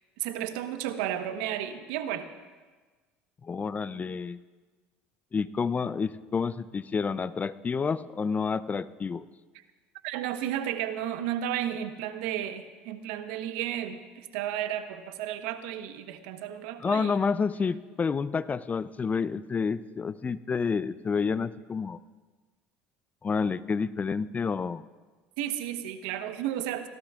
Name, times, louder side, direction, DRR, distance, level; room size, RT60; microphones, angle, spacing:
voice 1, 0.2-2.3 10.0-17.2 25.4-26.9, right 11 dB, 75° right, 9 dB, 1.1 m, -33 dB
voice 2, 3.4-4.4 5.3-9.3 16.8-22.0 23.2-24.8, left 5 dB, 30° left, 16 dB, 0.5 m, -29 dB
24.0 x 16.5 x 2.5 m, 1.3 s
hypercardioid pair, 70°, 6 cm